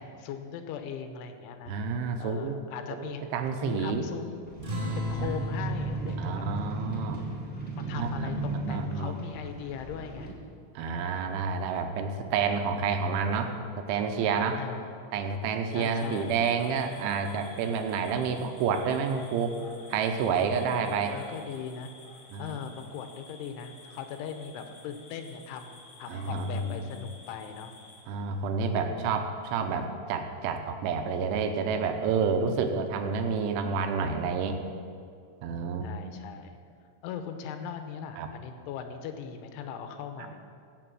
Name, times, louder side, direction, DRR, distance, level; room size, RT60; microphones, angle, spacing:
voice 1, 0.0-1.7 2.2-3.2 3.5-4.6 5.0-6.4 7.8-10.3 10.8-11.2 14.5-15.1 15.7-16.4 18.3-18.6 20.9-21.9 22.4-27.7 28.9-29.2 35.8-36.6 37.0-40.4, left 7 dB, 85° left, 7 dB, 3.2 m, -40 dB
voice 2, 1.7-2.6 3.0-4.1 5.1-5.5 6.2-7.2 8.0-9.2 10.8-14.6 15.1-19.5 19.9-21.1 22.3-22.6 26.1-26.9 28.1-34.6 35.4-35.9 38.2-38.3, right 5 dB, 80° right, 6 dB, 3.1 m, -29 dB
sound 1, 4.5-10.3, right 2 dB, ahead, 3.0 m, -36 dB
sound 2, 4.6-9.6, equal, 15° right, 2.0 m, -37 dB
sound 3, 15.7-28.0, left 2 dB, 60° left, 1.5 m, -51 dB
17.0 x 6.0 x 7.7 m, 2.3 s
omnidirectional pair, 5.6 m